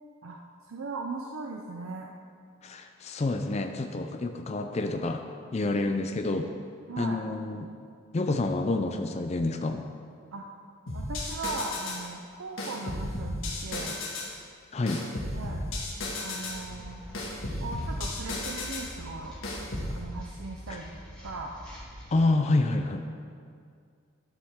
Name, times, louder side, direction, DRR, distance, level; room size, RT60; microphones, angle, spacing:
voice 1, 0.2-2.1 6.9-7.2 10.3-10.5 10.9-14.0 15.3-15.7 16.2-17.0 17.6-19.4 19.9-21.0 21.2-21.5, right 3 dB, 85° right, 1 dB, 0.6 m, -38 dB
voice 2, 2.6-5.2 5.5-6.5 7.0-7.7 8.1-9.8 14.7-15.0 20.7-20.8 22.1-23.1, left 2 dB, 35° left, 5 dB, 0.4 m, -28 dB
sound 1, 10.9-12.1 12.6-14.3 14.9-16.6 17.1-18.9 19.4-19.9, left 2 dB, 75° left, 1.7 m, -34 dB
sound 2, 16.4-22.2, equal, 5° left, 2.0 m, -45 dB
11.5 x 7.2 x 3.6 m, 2.2 s
head